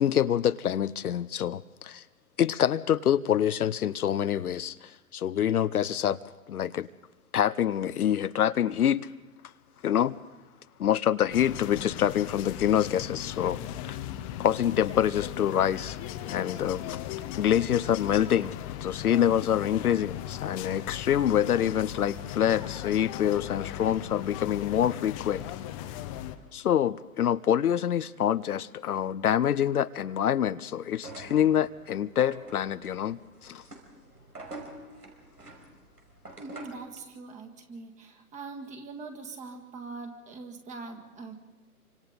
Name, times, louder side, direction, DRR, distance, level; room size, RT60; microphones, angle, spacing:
voice 1, 0.0-2.0 2.4-6.2 6.5-6.9 7.3-9.1 9.8-10.2 10.8-14.0 14.4-16.0 16.2-17.1 17.3-18.6 18.8-25.4 26.5-33.6, left 10 dB, 70° left, 0.7 m, -26 dB
sound 1, 11.3-26.3, left 12 dB, 20° left, 0.8 m, -38 dB
sound 2, 30.9-36.9, right 2 dB, 90° right, 5.2 m, -46 dB
voice 2, 36.4-41.3, right 3 dB, 15° right, 1.8 m, -42 dB
27.5 x 25.5 x 4.0 m
figure-of-eight pair, 130°, 46 cm